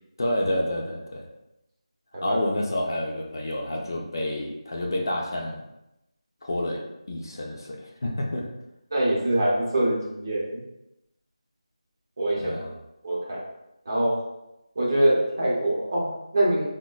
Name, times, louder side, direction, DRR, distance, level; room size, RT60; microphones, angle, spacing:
voice 1, 0.2-1.3 2.2-5.6 6.4-8.5 12.4-12.7, left 1 dB, 40° left, -1 dB, 0.4 m, -29 dB
voice 2, 8.9-10.6 12.2-12.5 13.0-13.4 13.9-14.2 14.8-16.7, right 1 dB, 35° right, -5 dB, 0.7 m, -24 dB
3.7 x 2.1 x 2.3 m, 0.90 s
figure-of-eight pair, 175°, 3 cm